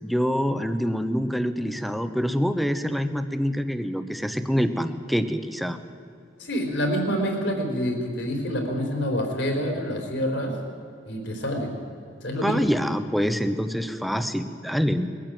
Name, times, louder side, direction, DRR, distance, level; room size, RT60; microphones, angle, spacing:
voice 1, 0.0-5.8 12.4-15.1, equal, ahead, 9 dB, 1.0 m, -25 dB
voice 2, 6.4-10.5 11.1-11.7 12.2-12.7, equal, 70° left, 3 dB, 4.1 m, -27 dB
21.5 x 14.0 x 9.2 m, 2.5 s
head